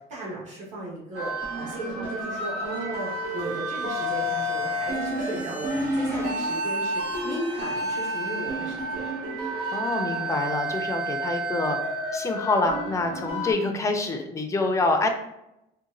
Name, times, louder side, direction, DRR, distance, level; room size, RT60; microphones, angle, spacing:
voice 1, 0.0-9.1, right 1 dB, 45° right, -6 dB, 1.4 m, -36 dB
sound 1, 1.1-13.5, right 1 dB, 80° right, 1.1 m, -30 dB
voice 2, 9.7-11.8 12.1-15.1, left 2 dB, 20° left, 4 dB, 0.5 m, -26 dB
4.0 x 2.2 x 2.5 m, 0.86 s
cardioid pair, 110°, 17 cm